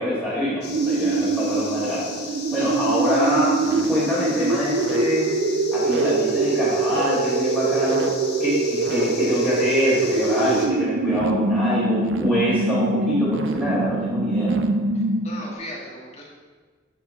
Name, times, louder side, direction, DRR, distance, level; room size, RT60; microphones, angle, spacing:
voice 1, 0.0-2.1 2.5-3.5 3.9-5.3 5.7-8.1 8.4-14.5, left 1 dB, 5° left, -13 dB, 2.5 m, -24 dB
sound 1, 0.6-10.7, left 4 dB, 55° left, 1.2 m, -37 dB
sound 2, 0.6-15.5, right 3 dB, 70° right, 0.5 m, -23 dB
voice 2, 14.9-16.2, left 1 dB, 35° left, -3 dB, 1.8 m, -38 dB
11.0 x 4.6 x 4.5 m, 1.5 s
head